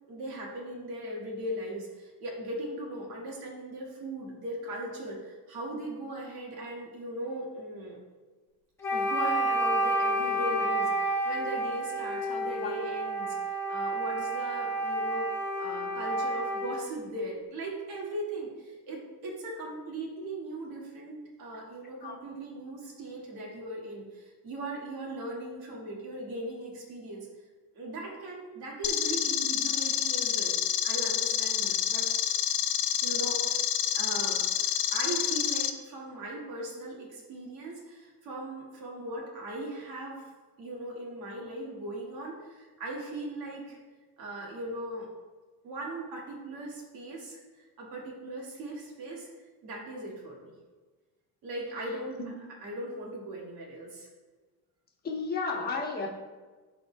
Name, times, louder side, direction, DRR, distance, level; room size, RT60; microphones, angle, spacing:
voice 1, 0.1-8.0 8.9-15.3 15.6-27.3 27.7-30.5 30.8-32.1 33.0-33.7 33.9-40.2 40.6-43.8 44.2-45.1 45.6-47.4 47.8-49.3 49.6-50.5 51.4-52.2 52.6-54.1, right 1 dB, 70° right, -2 dB, 1.9 m, -38 dB
Wind instrument woodwind instrument, 8.8-16.8, right 1 dB, 5° left, 1.4 m, -30 dB
sound 1, 28.8-35.7, left 10 dB, 75° left, 0.5 m, -28 dB
voice 2, 55.0-56.1, left 4 dB, 25° left, -2 dB, 1.1 m, -32 dB
12.0 x 3.9 x 2.2 m, 1.3 s
cardioid pair, 155°, 37 cm